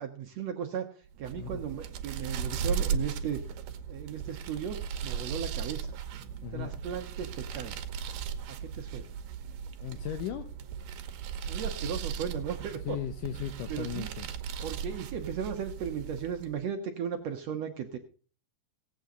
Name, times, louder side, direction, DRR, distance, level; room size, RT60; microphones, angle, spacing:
voice 1, 0.0-3.4 3.9-5.9 6.5-7.8 8.6-9.1 11.5-13.0 13.7-14.1 14.6-18.0, right 8 dB, 65° right, 5 dB, 1.9 m, -36 dB
sound 1, 1.1-16.6, right 7 dB, 80° right, 2.6 m, -37 dB
sound 2, 9.1-12.5, equal, 50° left, 5.2 m, -69 dB
voice 2, 9.8-10.5 12.9-14.3, left 11 dB, 75° left, 10 dB, 2.3 m, -36 dB
17.5 x 8.4 x 3.7 m, 0.39 s
omnidirectional pair, 3.9 m